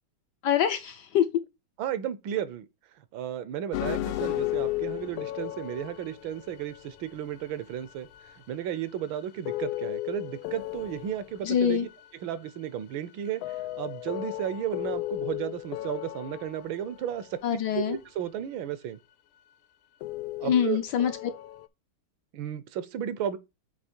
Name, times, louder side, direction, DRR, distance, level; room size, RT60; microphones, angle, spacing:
voice 1, 0.4-1.3 11.4-11.9 17.4-18.0 20.4-21.1, left 9 dB, 70° left, 1.1 m, -25 dB
voice 2, 1.8-2.7 3.1-8.1 8.5-11.9 12.2-13.4 13.8-17.4 17.7-19.0 20.4-20.8 22.3-23.4, right 10 dB, 75° right, 1.4 m, -33 dB
sound 1, 3.7-8.8 9.2-9.3 9.5-12.1 12.5-12.6 13.3-17.5 20.0-21.7, left 16 dB, 85° left, 1.4 m, -35 dB
8.3 x 3.1 x 4.3 m
omnidirectional pair, 2.2 m